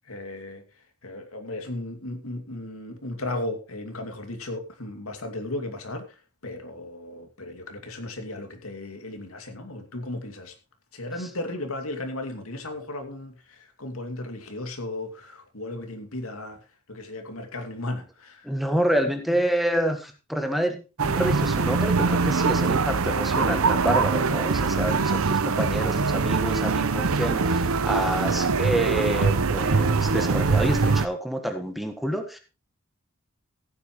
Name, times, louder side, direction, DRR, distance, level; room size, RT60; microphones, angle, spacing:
voice 1, 0.1-0.6 1.0-6.0 6.4-10.5 10.9-16.6 16.9-18.4, left 2 dB, 85° left, 2.6 m, -35 dB
voice 2, 18.4-32.4, right 1 dB, ahead, 1.6 m, -28 dB
sound 1, 21.0-31.1, right 4 dB, 85° right, 0.8 m, -23 dB
15.5 x 9.7 x 3.1 m
head